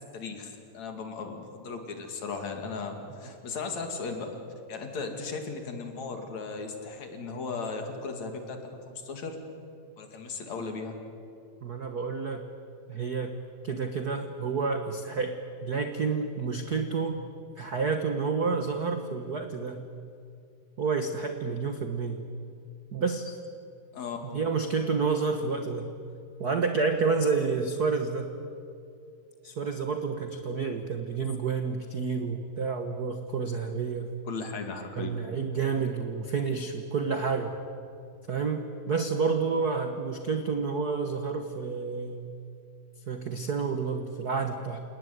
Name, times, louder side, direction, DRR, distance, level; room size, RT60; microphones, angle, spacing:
voice 1, 0.1-4.3 4.7-9.4 10.0-11.0 23.9-24.2 34.3-35.1, left 4 dB, 55° left, 5 dB, 3.6 m, -36 dB
voice 2, 11.6-12.5 12.9-13.4 13.6-17.2 17.6-19.8 20.8-22.2 22.9-23.3 24.2-25.9 26.4-28.3 29.4-34.1 34.9-37.5 38.3-42.3 43.1-44.8, right 5 dB, 75° right, 6 dB, 0.8 m, -29 dB
29.0 x 19.0 x 9.5 m, 2.5 s
omnidirectional pair, 3.8 m